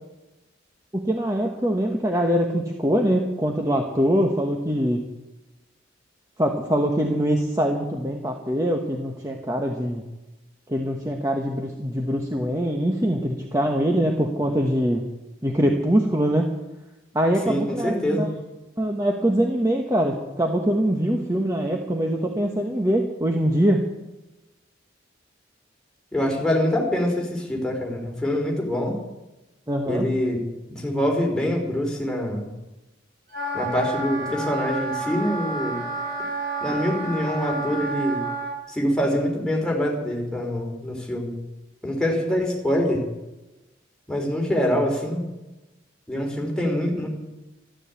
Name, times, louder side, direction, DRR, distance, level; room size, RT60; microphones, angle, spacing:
voice 1, 0.9-5.0 6.4-10.0 10.7-15.0 15.4-16.5 17.1-18.3 18.8-23.8 29.7-30.1, equal, 15° right, 1 dB, 1.3 m, -23 dB
voice 2, 17.4-18.3 26.1-29.0 29.9-30.4 30.7-32.5 33.5-35.8 36.6-38.2 38.7-41.3 41.8-43.1 44.1-45.2 46.1-47.1, equal, 5° left, -1 dB, 3.6 m, -25 dB
Wind instrument woodwind instrument, 33.3-38.5, right 2 dB, 50° right, 6.7 m, -30 dB
13.0 x 12.5 x 8.4 m, 1.0 s
head